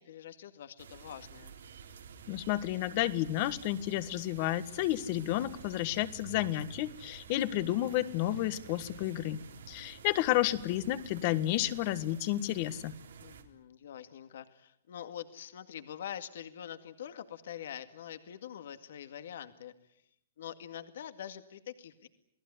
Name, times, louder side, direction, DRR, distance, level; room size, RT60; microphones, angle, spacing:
voice 1, 0.0-1.6 9.7-9.9 13.2-19.7 20.4-22.1, left 10 dB, 65° left, 10 dB, 2.0 m, -45 dB
sound 1, 0.8-13.4, right 7 dB, 85° right, 3.9 m, -51 dB
voice 2, 2.3-9.4 9.7-12.9, left 14 dB, 35° left, 14 dB, 1.5 m, -31 dB
29.0 x 19.0 x 9.7 m, 0.76 s
hypercardioid pair, 160°, 0 cm